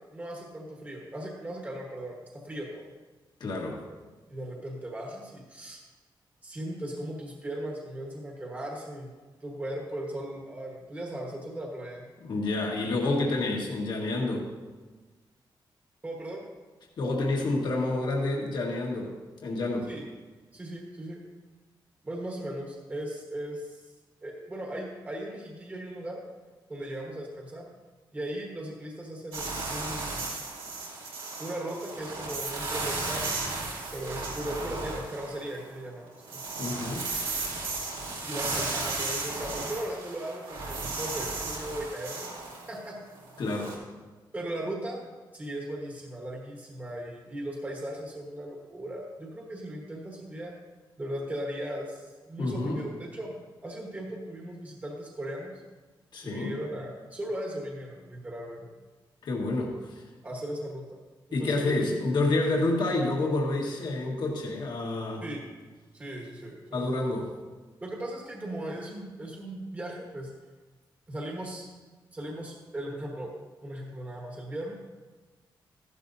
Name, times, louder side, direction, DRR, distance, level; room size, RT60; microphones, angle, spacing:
voice 1, 0.1-2.9 4.3-5.8 6.4-9.1 9.4-12.0 16.0-16.5 19.9-20.0 20.5-21.2 22.0-23.8 24.2-26.2 26.7-27.7 28.1-30.3 31.4-33.5 33.9-36.4 37.9-42.3 42.7-43.0 44.3-45.0 45.3-50.5 51.0-53.3 53.6-55.6 56.2-58.7 60.2-61.0 61.3-61.9 65.2-65.4 65.9-66.9 67.8-70.3 71.1-71.7 72.1-73.3 73.6-74.8, right 1 dB, 20° right, -1 dB, 1.3 m, -37 dB
voice 2, 3.4-3.8 12.2-14.5 17.0-19.1 19.4-19.9 36.6-37.1 43.4-43.8 52.4-52.8 56.1-56.6 59.2-60.0 61.3-65.2 66.7-67.3, left 2 dB, 65° left, -1 dB, 1.6 m, -28 dB
sound 1, 29.3-35.7 36.1-43.7, right 3 dB, 85° right, 2.9 m, -35 dB
14.5 x 12.0 x 2.7 m, 1.3 s
wide cardioid pair, 170°, 8 cm